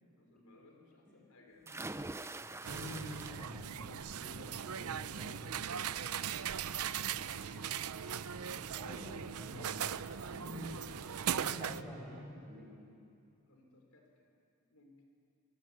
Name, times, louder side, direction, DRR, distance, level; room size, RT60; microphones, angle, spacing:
voice 1, 0.1-2.1 7.1-7.7 8.1-9.5 10.5-11.0 11.8-12.0 13.4-14.2 14.7-15.0, left 3 dB, 75° left, 1 dB, 4.5 m, -60 dB
sound 1, 1.7-3.7 4.1-4.6 6.0-6.1 6.5-6.6, right 2 dB, 10° right, 0.5 m, -45 dB
voice 2, 2.4-6.3 8.8-9.9 10.3-10.7 11.3-12.9, left 1 dB, 5° left, -3 dB, 7.3 m, -48 dB
sound 2, 2.6-11.8, right 8 dB, 85° right, 0.6 m, -39 dB
sound 3, 2.7-12.2, right 2 dB, 55° right, 7.0 m, -57 dB
24.5 x 24.0 x 8.9 m, 2.5 s
head